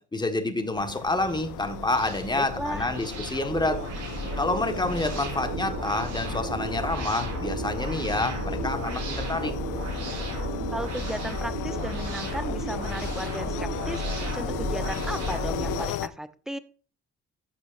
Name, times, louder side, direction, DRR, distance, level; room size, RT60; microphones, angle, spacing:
voice 1, 0.0-3.8 4.4-9.5, left 2 dB, 15° left, 6 dB, 1.5 m, -28 dB
sound 1, 0.7-16.1, left 14 dB, 85° left, 0.6 m, -36 dB
sound 2, 0.9-15.9, right 3 dB, 85° right, 5.3 m, -33 dB
voice 2, 2.3-2.9 10.7-14.0 14.3-16.6, equal, ahead, 11 dB, 0.8 m, -35 dB
15.0 x 6.9 x 2.6 m, 0.38 s
cardioid pair, 90°, 30 cm